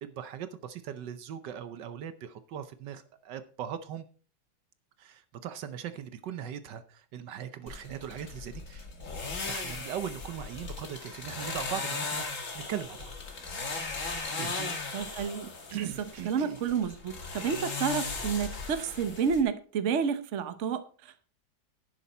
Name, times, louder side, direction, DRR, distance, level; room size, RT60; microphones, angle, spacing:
voice 1, 0.0-4.0 5.0-8.9 9.4-13.1 14.3-14.7 15.7-16.6, right 9 dB, 70° right, 11 dB, 1.4 m, -39 dB
sound 1, 7.7-19.4, left 4 dB, 45° left, 2.1 m, -37 dB
voice 2, 14.9-21.2, right 6 dB, 45° right, 10 dB, 1.1 m, -30 dB
11.0 x 9.6 x 4.3 m, 0.41 s
omnidirectional pair, 2.0 m